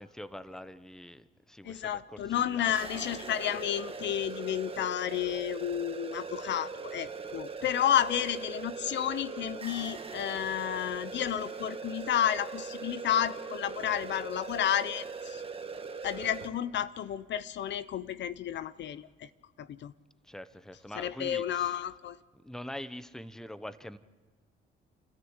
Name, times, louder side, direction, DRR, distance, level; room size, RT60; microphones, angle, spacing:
voice 1, 0.0-3.2 20.2-21.8 22.4-24.0, left 1 dB, 5° left, 14 dB, 0.9 m, -44 dB
voice 2, 1.6-15.4 16.0-19.3 19.6-19.9 21.0-22.2, left 10 dB, 65° left, 16 dB, 0.6 m, -31 dB
sound 1, 2.8-16.5, right 4 dB, 30° right, 1.8 m, -40 dB
30.0 x 13.0 x 8.0 m, 1.4 s
cardioid pair, 90°, 20 cm